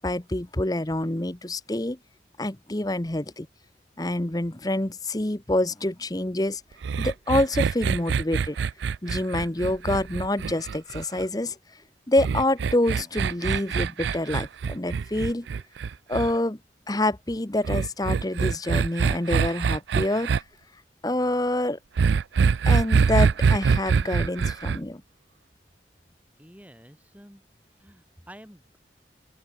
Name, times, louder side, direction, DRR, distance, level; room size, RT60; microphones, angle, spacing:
voice 1, 0.0-2.0 2.4-3.5 4.0-6.6 7.0-8.6 9.0-11.6 12.1-15.5 16.1-16.6 16.9-20.3 21.0-21.8 22.6-25.0, left 1 dB, 20° left, 0.9 m, -27 dB
sound 1, 6.8-11.2 12.2-16.3 17.6-20.4 22.0-24.8, right 5 dB, 70° right, 0.4 m, -24 dB
voice 2, 26.4-27.4 27.7-28.8, equal, 10° right, 7.9 m, -49 dB
open air
head